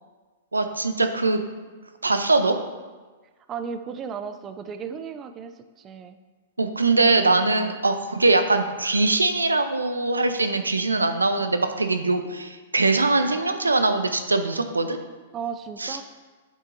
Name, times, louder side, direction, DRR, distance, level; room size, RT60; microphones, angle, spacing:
voice 1, 0.5-1.4 2.0-2.6 6.6-15.0 15.8-16.0, right 3 dB, 90° right, 8 dB, 0.6 m, -22 dB
voice 2, 3.5-6.2 7.5-7.7 15.3-16.0, right 6 dB, 25° right, 9 dB, 0.5 m, -35 dB
8.4 x 7.9 x 2.6 m, 1.3 s
figure-of-eight pair, 110°, 0 cm